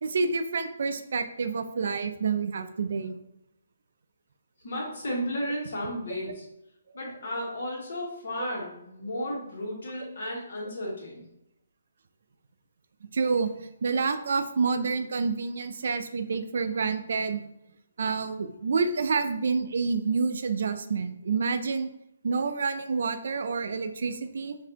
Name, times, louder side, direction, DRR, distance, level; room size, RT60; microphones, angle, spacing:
voice 1, 0.0-3.2 8.4-8.5 13.1-17.4 18.0-21.9 22.2-24.6, right 4 dB, 65° right, 9 dB, 0.4 m, -28 dB
voice 2, 4.6-6.4 6.9-11.2, equal, 65° left, -3 dB, 1.4 m, -33 dB
4.0 x 2.6 x 2.9 m, 0.82 s
hypercardioid pair, 155°, 0 cm